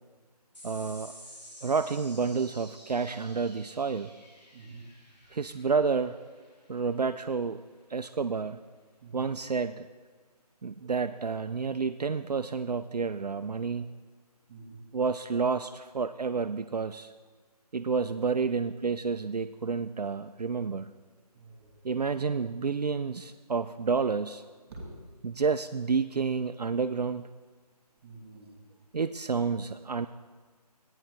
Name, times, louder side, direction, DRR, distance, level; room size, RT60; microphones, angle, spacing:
sound 1, 0.5-7.3, equal, 90° left, 2.8 m, -52 dB
voice 1, 0.6-1.1 1.6-4.1 5.3-6.2 6.7-7.6 7.9-8.6 9.1-9.9 10.6-13.9 14.9-17.1 17.7-20.9 21.8-24.4 25.2-27.3 28.9-30.1, right 5 dB, 75° right, 9 dB, 0.4 m, -30 dB
voice 2, 4.5-4.9 9.0-9.3 14.5-14.8 21.3-21.7 24.7-24.9 28.0-28.6, right 3 dB, 20° right, -2 dB, 2.1 m, -46 dB
13.5 x 9.2 x 3.5 m, 1.4 s
figure-of-eight pair, 155°, 21 cm